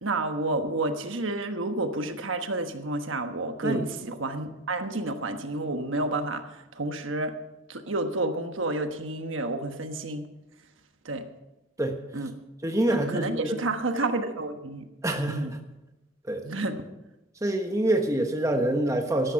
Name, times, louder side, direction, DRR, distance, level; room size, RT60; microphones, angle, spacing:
voice 1, 0.0-7.3 7.7-10.3 11.0-11.2 12.1-12.3 12.9-14.8 15.3-15.5 16.4-16.8, right 2 dB, 70° right, 7 dB, 1.3 m, -30 dB
voice 2, 12.6-13.6 15.0-15.6 16.3-16.4 17.4-19.3, right 1 dB, 15° right, 4 dB, 1.2 m, -26 dB
13.0 x 13.0 x 5.9 m, 0.97 s
head